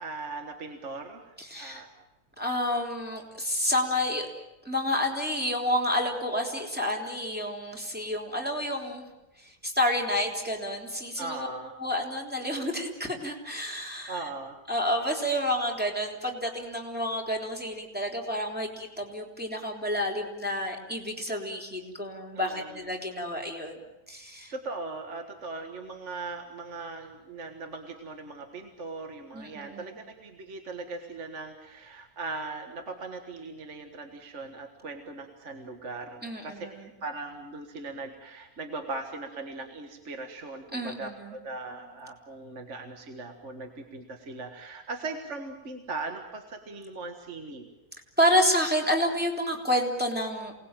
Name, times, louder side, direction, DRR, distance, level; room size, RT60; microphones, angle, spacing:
voice 1, 0.0-1.9 11.2-11.8 14.1-14.6 22.3-22.9 24.5-47.7, right 3 dB, 50° right, 5 dB, 1.9 m, -39 dB
voice 2, 1.4-1.8 2.4-4.3 4.6-9.0 9.4-11.5 11.8-14.3 14.7-23.7 24.1-24.5 29.3-30.0 36.2-36.8 40.7-41.4 48.2-50.5, equal, 5° right, 1 dB, 3.6 m, -29 dB
28.0 x 19.5 x 9.0 m, 1.0 s
omnidirectional pair, 1.7 m